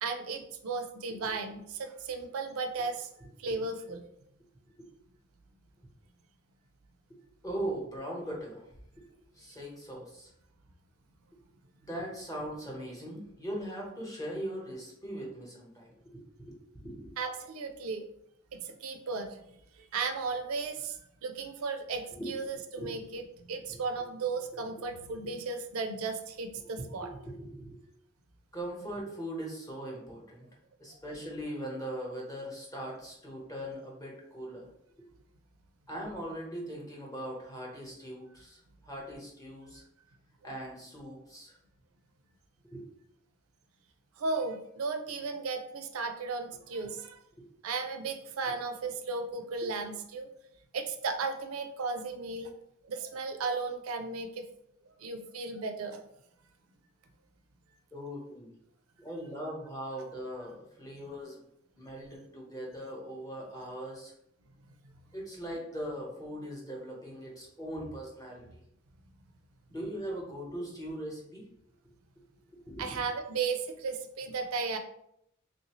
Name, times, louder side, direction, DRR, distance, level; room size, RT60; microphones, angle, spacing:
voice 1, 0.0-3.1 3.4-4.0 17.2-18.1 18.5-19.4 19.8-27.1 44.2-47.2 47.6-50.3 50.7-52.5 52.8-54.5 55.0-56.0 72.8-74.8, right 4 dB, 90° right, 6 dB, 0.4 m, -35 dB
voice 2, 1.1-1.4 3.5-3.6 4.8-4.9 7.4-8.7 9.4-10.3 11.3-11.4 11.8-17.1 22.1-22.5 22.7-22.9 23.7-23.8 24.7-24.8 26.6-27.8 28.5-30.5 30.8-34.7 35.9-39.8 40.4-41.6 42.7-42.8 57.9-58.5 59.0-61.4 61.8-64.1 65.1-68.6 69.7-71.5 72.5-73.1, right 1 dB, 15° left, -3 dB, 0.9 m, -40 dB
3.3 x 2.6 x 2.9 m, 0.75 s
head